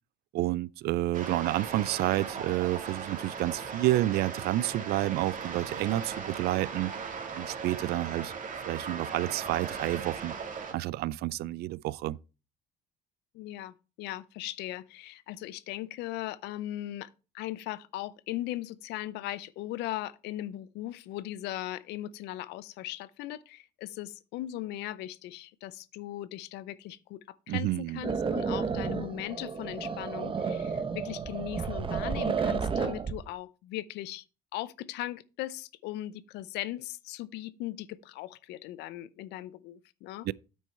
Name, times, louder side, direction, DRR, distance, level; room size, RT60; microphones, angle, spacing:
voice 1, 0.3-6.9 7.3-8.3 8.7-10.3 10.7-12.2 27.5-28.0 40.2-40.3, right 16 dB, 70° right, 0.4 m, -29 dB
sound 1, 1.1-10.7, right 5 dB, 50° right, 2.4 m, -38 dB
voice 2, 13.3-34.2 34.5-40.3, left 14 dB, 85° left, 0.6 m, -38 dB
sound 2, 28.0-33.2, right 5 dB, 30° right, 1.0 m, -31 dB
8.8 x 6.2 x 4.5 m
cardioid pair, 110°, 17 cm